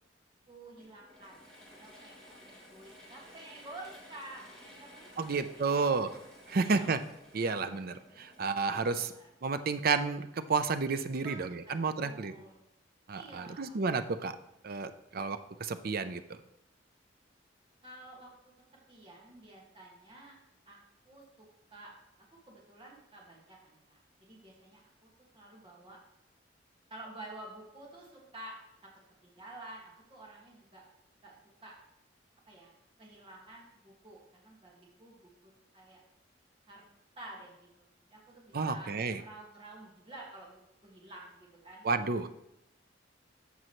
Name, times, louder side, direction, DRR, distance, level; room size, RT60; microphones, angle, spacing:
voice 1, 0.5-1.4 1.7-2.1 2.4-5.8 6.6-6.9 8.8-9.3 11.2-12.6 13.1-13.8 17.8-18.3 18.9-20.3 20.7-20.8 21.1-21.9 22.5-26.0 26.9-28.6 29.2-30.8 31.2-31.4 31.6-31.7 32.5-32.7 33.0-36.0 36.7-36.8 37.2-40.5 40.8-41.9, right 2 dB, 30° right, -3 dB, 1.8 m, -50 dB
Mechanisms / Drill, 0.8-9.4, left 1 dB, 5° left, 2.4 m, -55 dB
voice 2, 5.2-6.1 6.5-7.0 7.3-9.1 9.4-12.3 13.1-14.3 14.6-16.2 38.5-39.2 41.8-42.3, right 4 dB, 55° right, 10 dB, 0.5 m, -31 dB
14.0 x 5.5 x 3.1 m, 0.84 s
head